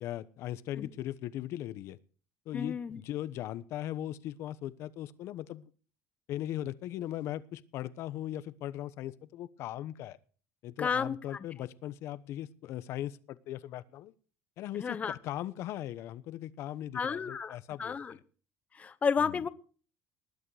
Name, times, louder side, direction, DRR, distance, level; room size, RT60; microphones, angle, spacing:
voice 1, 0.0-2.0 2.5-5.7 6.3-10.2 10.6-14.1 14.6-18.0 19.2-19.4, left 13 dB, 60° left, 16 dB, 1.0 m, -39 dB
voice 2, 2.5-3.0 10.8-11.2 14.7-15.2 16.9-18.2 18.7-19.5, left 6 dB, 30° left, 14 dB, 1.0 m, -32 dB
20.0 x 8.7 x 4.9 m, 0.40 s
cardioid pair, 115°, 5 cm